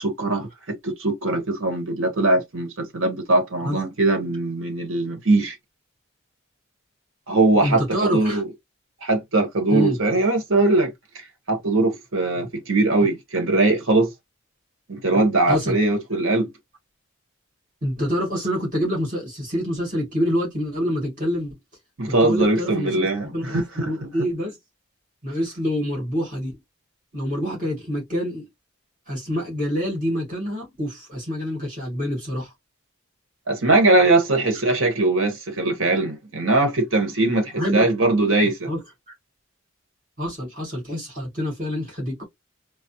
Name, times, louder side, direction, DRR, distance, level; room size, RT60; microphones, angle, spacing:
voice 1, 0.0-5.6 7.3-8.5 9.0-14.1 14.9-16.5 22.0-24.1 33.5-38.7, right 2 dB, 70° right, 1.2 m, -21 dB
voice 2, 7.6-8.4 9.7-10.0 15.5-15.8 17.8-21.6 22.0-24.6 25.2-26.6 27.1-28.5 29.1-32.5 37.6-37.9 38.7-38.8 40.2-42.2, equal, 40° right, 2.1 m, -26 dB
4.0 x 2.0 x 2.7 m
head